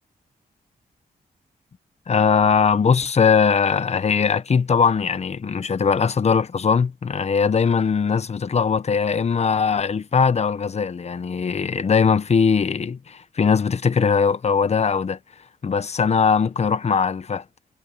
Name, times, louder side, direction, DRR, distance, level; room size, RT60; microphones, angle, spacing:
voice 1, 2.1-15.2 15.6-17.4, left 6 dB, 45° left, 1.0 m, -20 dB
cardioid pair, 95°, 16 cm